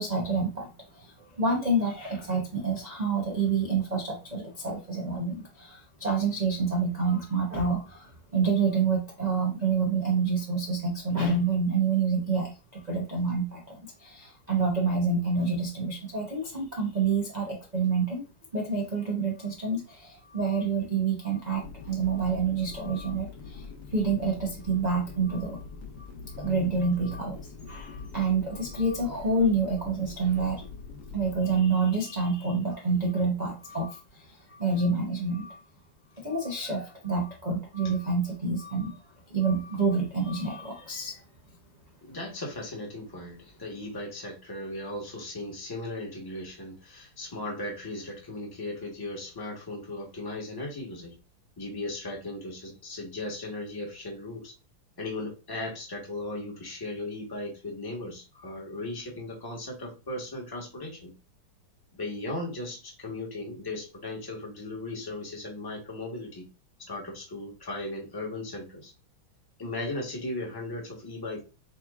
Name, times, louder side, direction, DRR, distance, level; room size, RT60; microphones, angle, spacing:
voice 1, 0.0-18.2 18.5-25.6 26.0-27.4 27.7-30.6 31.1-35.6 36.2-39.0 39.3-41.2, right 4 dB, 85° right, -1 dB, 0.3 m, -28 dB
sound 1, 21.6-31.6, left 5 dB, 60° left, 1.6 m, -43 dB
voice 2, 42.0-51.2 51.6-54.5 55.0-61.1 61.9-66.5 66.8-68.9 69.6-71.4, left 2 dB, 15° left, -1 dB, 0.9 m, -37 dB
5.8 x 2.9 x 2.4 m, 0.30 s
omnidirectional pair, 2.3 m